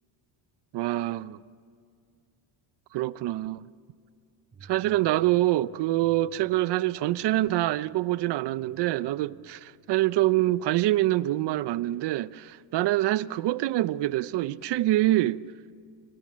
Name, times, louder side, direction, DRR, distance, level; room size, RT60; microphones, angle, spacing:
voice 1, 0.7-1.4 2.9-3.7 4.6-15.4, right 16 dB, 55° right, 0.8 m, -25 dB
sound 1, 4.5-10.5, right 3 dB, 25° right, 6.2 m, -58 dB
28.5 x 27.5 x 7.5 m
cardioid pair, 155°, 48 cm